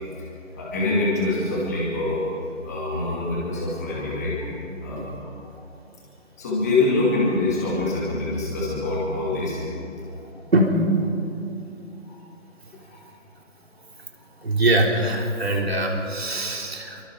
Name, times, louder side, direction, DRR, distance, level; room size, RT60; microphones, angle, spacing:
voice 1, 0.5-2.2 2.6-4.5 4.8-5.0 5.4-5.5 6.4-9.6 10.2-10.3 12.1-12.2 12.9-13.0, left 2 dB, 15° left, -6 dB, 2.4 m, -25 dB
voice 2, 14.4-17.0, right 1 dB, 50° right, 0 dB, 3.6 m, -22 dB
27.5 x 24.0 x 4.7 m, 2.7 s
figure-of-eight pair, 165°, 39 cm